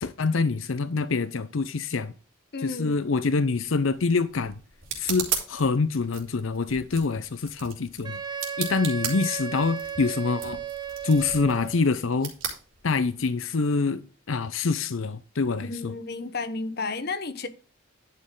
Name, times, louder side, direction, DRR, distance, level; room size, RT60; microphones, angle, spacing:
voice 1, 0.0-2.1 2.6-4.6 5.0-8.2 8.6-10.6 11.0-12.3 12.8-14.0 14.3-15.9, left 4 dB, 85° left, 0.6 m, -25 dB
voice 2, 2.5-3.0 15.6-17.5, left 3 dB, 50° left, 1.0 m, -32 dB
sound 1, 3.5-13.4, right 7 dB, 85° right, 3.3 m, -37 dB
Wind instrument woodwind instrument, 8.0-11.8, right 7 dB, 20° right, 1.0 m, -35 dB
10.5 x 6.5 x 3.8 m
head